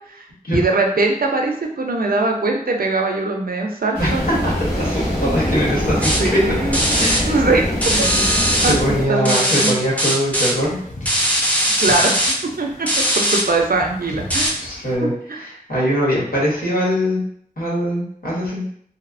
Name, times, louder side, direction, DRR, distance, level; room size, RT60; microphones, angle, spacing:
voice 1, 0.0-4.4 6.2-6.8 7.2-7.7 8.6-8.8 9.1-9.7 11.8-12.2 12.6-14.7 15.0-15.5, right 3 dB, 75° right, 2 dB, 0.4 m, -21 dB
sound 1, 3.9-9.1, equal, 90° left, 1.2 m, -23 dB
voice 2, 4.4-6.4 7.0-7.3 7.9-8.2 8.6-10.8 14.6-17.2 17.6-18.6, equal, 75° left, -6 dB, 1.1 m, -22 dB
Wind / Ocean / Boat Water vehicle, 4.6-14.9, left 1 dB, 55° left, 0.5 m, -37 dB
sound 2, 6.0-6.2 6.7-7.2 7.8-8.7 9.3-9.7 10.0-10.5 11.1-12.3 12.9-13.4 14.3-14.5, equal, 10° left, 0.5 m, -19 dB
2.8 x 2.0 x 2.4 m, 0.63 s
wide cardioid pair, 45°, 15 cm